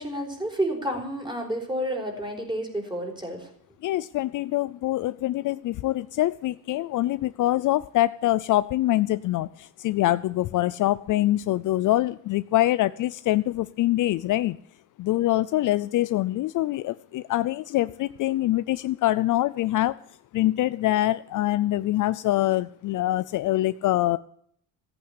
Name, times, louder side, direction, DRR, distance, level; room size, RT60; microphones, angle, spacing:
voice 1, 0.0-3.5, right 1 dB, 10° right, 2 dB, 4.7 m, -30 dB
voice 2, 3.8-14.6 15.0-20.0 20.3-24.2, left 15 dB, 55° left, 16 dB, 0.5 m, -24 dB
14.5 x 8.8 x 8.8 m, 0.66 s
cardioid pair, 120°, 37 cm